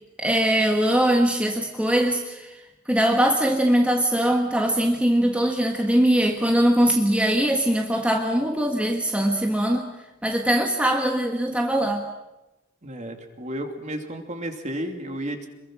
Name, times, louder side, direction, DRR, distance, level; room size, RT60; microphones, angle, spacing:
voice 1, 0.2-2.6 2.9-9.9 10.2-12.0, right 1 dB, 5° right, 3 dB, 1.4 m, -21 dB
voice 2, 12.8-15.5, right 1 dB, 35° right, 5 dB, 2.8 m, -32 dB
27.0 x 22.0 x 6.2 m, 1.0 s
head